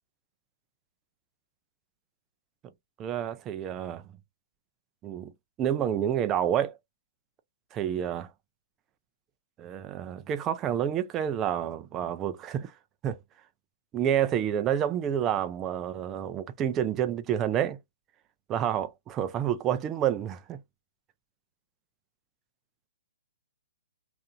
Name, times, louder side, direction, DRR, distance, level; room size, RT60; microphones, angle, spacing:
voice 1, 3.0-4.0 5.0-5.3 5.6-6.7 7.7-8.3 9.6-12.7 13.0-13.2 13.9-17.8 18.5-20.6, right 10 dB, 20° right, 0.4 m, -29 dB
2.7 x 2.5 x 2.2 m
hypercardioid pair, 155°, 0 cm